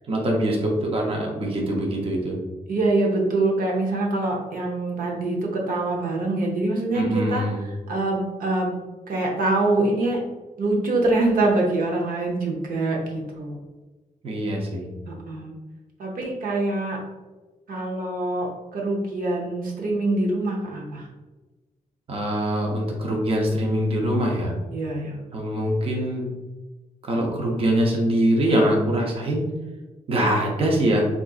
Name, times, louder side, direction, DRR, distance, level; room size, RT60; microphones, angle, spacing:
voice 1, 0.1-2.4 6.9-7.6 14.2-14.9 22.1-24.5 25.3-26.3 27.0-29.5 30.1-31.1, right 1 dB, 40° right, -1 dB, 0.6 m, -23 dB
voice 2, 2.7-8.8 9.1-10.2 10.6-13.6 15.1-15.5 16.0-17.0 17.7-21.1 24.7-25.2, right 2 dB, 80° right, -1 dB, 0.7 m, -24 dB
3.7 x 2.5 x 2.4 m, 1.2 s
wide cardioid pair, 140°, 14 cm